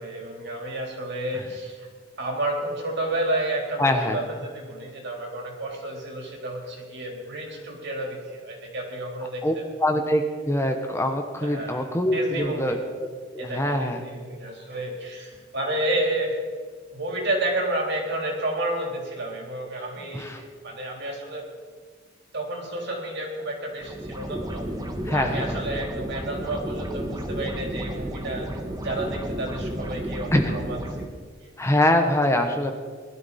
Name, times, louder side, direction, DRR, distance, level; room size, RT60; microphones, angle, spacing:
voice 1, 0.0-1.9 2.2-9.6 11.4-12.8 13.4-16.4 16.9-21.4 22.3-24.7 25.1-28.5 28.8-30.8, right 1 dB, 60° right, 0 dB, 3.7 m, -31 dB
voice 2, 3.8-4.2 9.4-9.5 9.8-12.8 13.3-14.0 20.1-20.4 25.0-25.6 30.3-30.5 31.6-32.7, left 1 dB, 15° left, 5 dB, 1.0 m, -23 dB
sound 1, 23.8-31.1, right 1 dB, 20° right, 1.2 m, -32 dB
20.0 x 12.5 x 4.2 m, 1.5 s
head